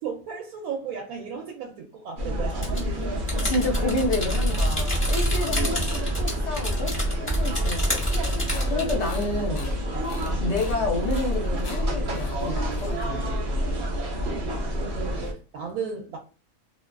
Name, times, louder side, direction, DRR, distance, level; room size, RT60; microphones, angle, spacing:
voice 1, 0.0-3.3 5.5-5.9 10.3-10.5 14.7-16.2, right 6 dB, 85° right, 1.1 m, -35 dB
sound 1, 2.2-15.3, equal, 50° right, 0.6 m, -29 dB
sound 2, 2.5-8.9, right 1 dB, 10° left, 0.7 m, -27 dB
voice 2, 3.4-8.1 8.6-9.7 10.4-13.3, left 2 dB, 60° left, 0.8 m, -29 dB
sound 3, 7.9-13.4, left 3 dB, 80° left, 0.4 m, -45 dB
2.5 x 2.3 x 2.2 m
omnidirectional pair, 1.5 m